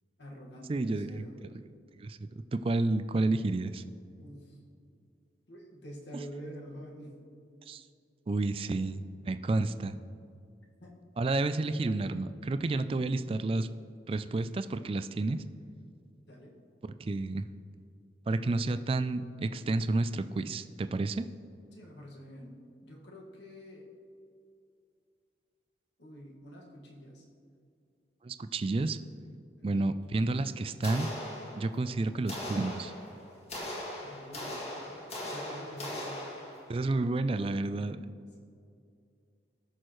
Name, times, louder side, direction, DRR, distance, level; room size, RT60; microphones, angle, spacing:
voice 1, 0.2-1.4 4.2-4.6 5.5-7.3 8.7-8.8 10.8-10.9 16.3-16.6 21.7-22.5 22.8-23.9 26.0-27.2 29.6-29.9 34.0-34.6 34.9-36.2 37.7-38.1, equal, 80° left, -2 dB, 1.8 m, -47 dB
voice 2, 0.7-1.2 2.0-3.8 7.7-7.8 8.3-10.0 11.2-13.7 14.1-15.4 17.0-17.5 18.3-21.3 28.2-29.0 29.6-31.1 31.5-32.9 36.7-38.0, right 2 dB, 30° right, 11 dB, 0.3 m, -30 dB
sound 1, 30.8-31.9 32.3-36.8, left 1 dB, 35° left, 1.8 m, -40 dB
18.5 x 6.5 x 3.1 m, 2.4 s
head